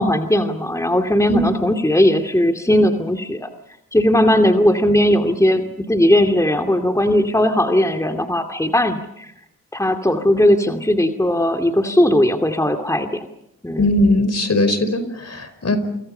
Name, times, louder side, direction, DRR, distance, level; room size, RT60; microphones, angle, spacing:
voice 1, 0.0-3.5 3.9-9.3 9.7-13.3 13.6-14.0, left 1 dB, 10° left, 4 dB, 2.4 m, -18 dB
voice 2, 13.8-15.8, left 1 dB, 50° left, 11 dB, 5.0 m, -19 dB
29.5 x 25.0 x 5.6 m, 0.79 s
cardioid pair, 50°, 32 cm